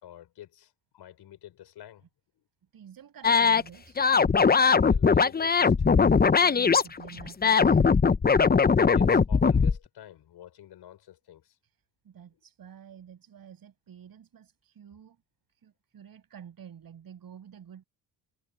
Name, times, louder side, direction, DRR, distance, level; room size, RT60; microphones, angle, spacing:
voice 1, 0.0-2.0 4.7-5.8 8.1-8.3 8.6-11.6, left 12 dB, 65° left, 5.9 m, -49 dB
voice 2, 2.7-4.0 6.4-7.8 11.6-15.2 15.5-17.8, right 8 dB, 55° right, 6.7 m, -49 dB
sound 1, 3.2-3.6 4.0-9.8, left 5 dB, 20° left, 0.9 m, -20 dB
supercardioid pair, 70°, 43 cm